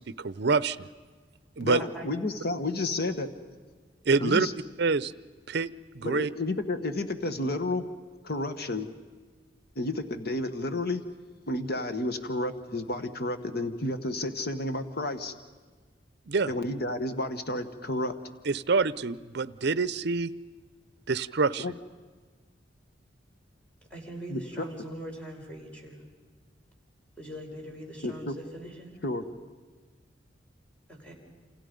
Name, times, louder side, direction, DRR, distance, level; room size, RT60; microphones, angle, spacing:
voice 1, 0.2-0.9 1.6-1.8 4.1-4.5 4.8-5.1 5.5-6.3 16.3-16.5 18.5-20.3 21.1-21.7, right 4 dB, 65° right, 17 dB, 0.6 m, -26 dB
voice 2, 1.6-3.3 4.2-4.5 6.0-7.9 8.2-8.9 9.7-11.0 11.5-15.3 16.5-18.1 21.6-21.7 24.3-24.4 28.0-28.4 29.0-29.2, left 2 dB, 60° left, 9 dB, 1.4 m, -31 dB
voice 3, 23.9-26.0 27.2-29.0 30.9-31.1, right 1 dB, 5° left, 0 dB, 5.0 m, -42 dB
28.5 x 27.5 x 5.3 m, 1.4 s
head